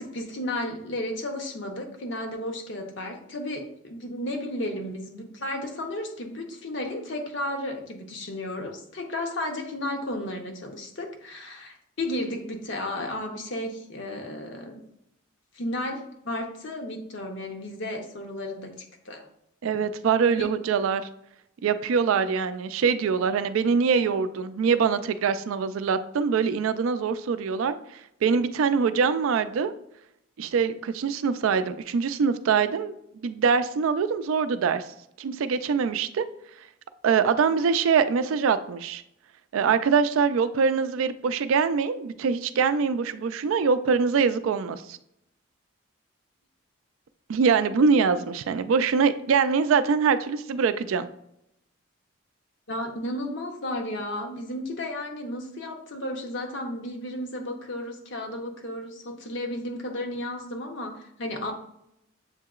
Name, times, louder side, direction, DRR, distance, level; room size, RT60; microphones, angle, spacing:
voice 1, 0.0-14.8 15.5-18.7 19.1-19.3 20.4-20.5 52.7-61.5, left 1 dB, 60° left, 3 dB, 0.7 m, -33 dB
voice 2, 19.6-21.0 21.6-29.7 30.4-32.9 33.2-34.8 35.2-36.3 37.0-39.0 39.5-45.0 47.3-51.1, right 5 dB, 80° right, 12 dB, 0.3 m, -23 dB
7.2 x 2.8 x 2.3 m, 0.78 s
head